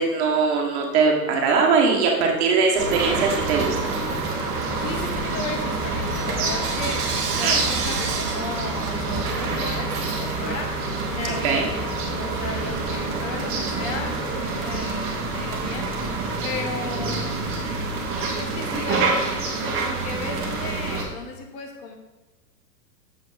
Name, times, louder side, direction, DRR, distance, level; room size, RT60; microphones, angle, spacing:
voice 1, 0.0-3.8 7.4-7.6 11.2-11.7, right 4 dB, 40° right, 1 dB, 1.5 m, -21 dB
sound 1, 2.8-21.0, right 3 dB, 25° right, 1.3 m, -27 dB
Bell / Coin (dropping), 2.9-4.4 4.8-10.8, right 5 dB, 65° right, 1.6 m, -32 dB
voice 2, 4.8-7.1 7.4-10.8 11.1-16.0 16.4-17.2 18.2-21.9, left 4 dB, 30° left, 4 dB, 1.1 m, -35 dB
7.3 x 4.5 x 4.1 m, 1.1 s
hypercardioid pair, 130°, 50 cm